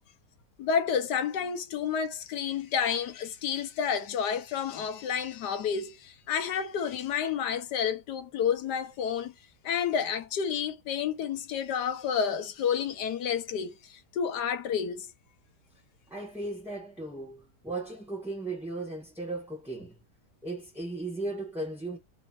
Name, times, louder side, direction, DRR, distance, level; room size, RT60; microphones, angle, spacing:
voice 1, 0.6-9.3 9.6-15.1, left 7 dB, 75° left, 1.4 m, -30 dB
voice 2, 16.1-20.0 20.4-22.0, right 2 dB, ahead, 1.4 m, -36 dB
4.1 x 2.7 x 4.4 m
omnidirectional pair, 1.8 m